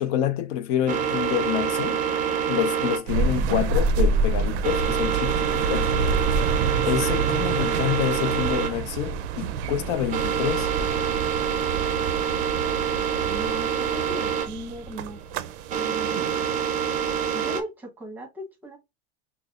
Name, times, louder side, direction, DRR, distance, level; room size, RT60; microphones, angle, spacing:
voice 1, 0.0-2.0 2.5-5.9 6.8-10.7, left 11 dB, 50° left, 0.6 m, -27 dB
sound 1, 0.9-17.6, right 8 dB, 25° right, 0.5 m, -27 dB
sound 2, 3.1-17.3, right 4 dB, 85° right, 0.5 m, -28 dB
voice 2, 13.0-15.2 15.7-16.3 17.3-18.8, equal, 5° right, 1.0 m, -38 dB
5.9 x 2.0 x 2.4 m
supercardioid pair, 155°, 32 cm